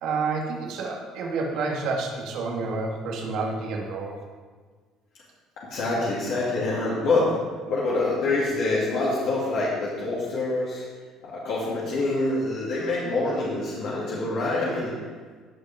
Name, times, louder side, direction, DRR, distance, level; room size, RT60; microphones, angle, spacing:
voice 1, 0.0-4.2, right 4 dB, 70° right, 0 dB, 2.0 m, -29 dB
voice 2, 5.6-7.4 7.7-10.8 11.2-15.0, left 2 dB, 70° left, -7 dB, 2.7 m, -26 dB
16.5 x 5.7 x 3.7 m, 1.5 s
supercardioid pair, 90°, 0 cm